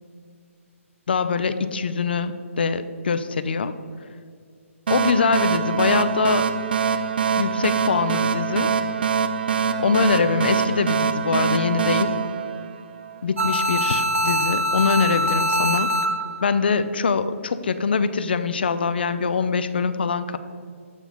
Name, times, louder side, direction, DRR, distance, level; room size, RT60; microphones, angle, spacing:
voice 1, 1.1-3.7 4.9-6.5 7.4-8.7 9.8-12.2 13.2-15.9 16.4-20.4, left 5 dB, 45° left, 12 dB, 0.3 m, -23 dB
sound 1, 4.9-13.2, right 6 dB, 45° right, 0.3 m, -24 dB
sound 2, 13.4-16.4, equal, 75° right, 0.7 m, -23 dB
7.9 x 3.0 x 5.4 m, 2.2 s
hypercardioid pair, 175°, 8 cm